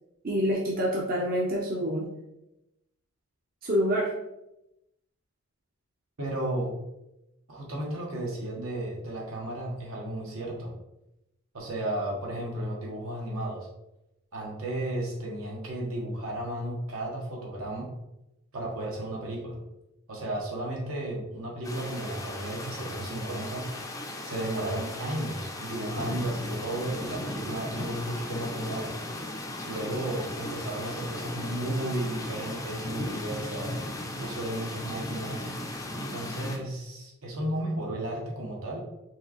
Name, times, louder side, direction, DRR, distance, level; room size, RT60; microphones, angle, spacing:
voice 1, 0.2-2.1 3.6-4.1, equal, 40° right, -3 dB, 0.7 m, -26 dB
voice 2, 6.2-6.7 7.5-10.7 11.5-13.7 14.3-17.9 18.5-19.6 20.1-23.7 24.2-28.9 29.6-35.4 36.1-38.8, right 1 dB, 80° right, -2 dB, 1.2 m, -34 dB
sound 1, 21.6-36.6, left 1 dB, 15° left, 0.5 m, -37 dB
4.6 x 3.2 x 3.0 m, 0.91 s
head